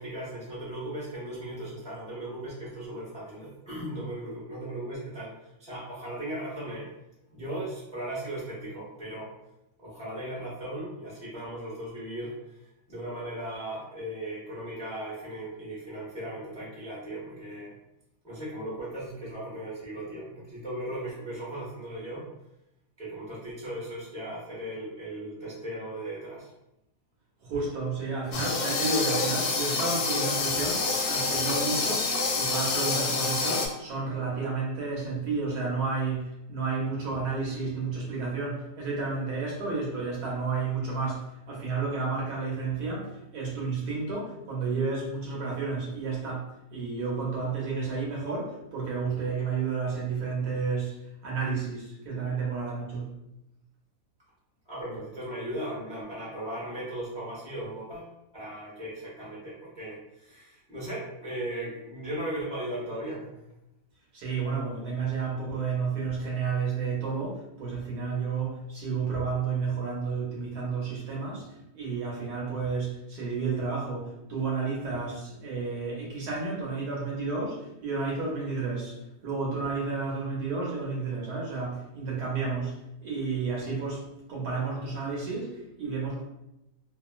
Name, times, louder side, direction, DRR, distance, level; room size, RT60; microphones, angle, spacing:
voice 1, 0.0-5.3 5.6-6.9 7.3-9.3 9.8-12.6 12.9-17.7 18.2-22.3 23.0-26.5 54.7-63.4, right 1 dB, 5° left, -8 dB, 0.8 m, -37 dB
voice 2, 27.4-53.1 64.1-79.0 79.2-86.2, right 4 dB, 75° right, -3 dB, 1.4 m, -31 dB
sound 1, 28.3-33.7, left 3 dB, 75° left, 0.6 m, -27 dB
2.9 x 2.5 x 2.4 m, 0.86 s
omnidirectional pair, 1.7 m